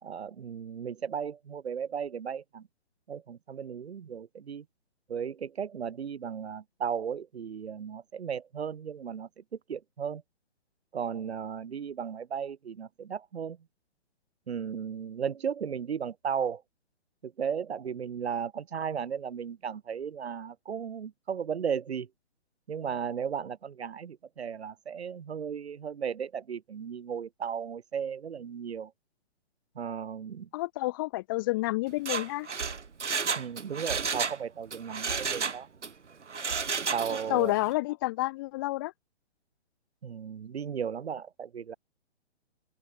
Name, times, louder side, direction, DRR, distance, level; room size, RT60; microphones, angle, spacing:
voice 1, 0.0-2.7 3.1-4.6 5.1-9.4 9.7-10.2 10.9-13.6 14.5-16.6 17.2-22.1 22.7-28.9 29.7-30.5 33.3-35.7 36.9-37.6 40.0-41.8, right 7 dB, 65° right, 2.8 m, -35 dB
voice 2, 30.5-32.5 37.3-38.9, left 20 dB, 20° left, 0.8 m, -29 dB
Mechanisms, 31.9-34.4 34.7-35.9 36.3-37.4 37.7-37.8, right 5 dB, 90° right, 2.1 m, -32 dB
open air
hypercardioid pair, 150°, 35 cm